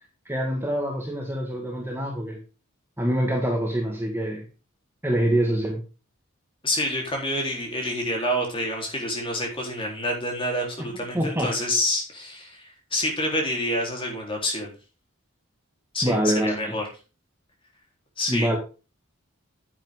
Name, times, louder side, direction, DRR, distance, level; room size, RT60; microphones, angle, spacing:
voice 1, 0.3-2.4 3.0-4.4 5.0-5.8 11.1-11.5 16.0-16.7 18.3-18.6, right 1 dB, 10° right, 0 dB, 1.8 m, -25 dB
voice 2, 6.6-14.7 15.9-16.8 18.2-18.5, left 1 dB, 25° left, 0 dB, 3.9 m, -27 dB
10.0 x 9.1 x 3.8 m, 0.33 s
head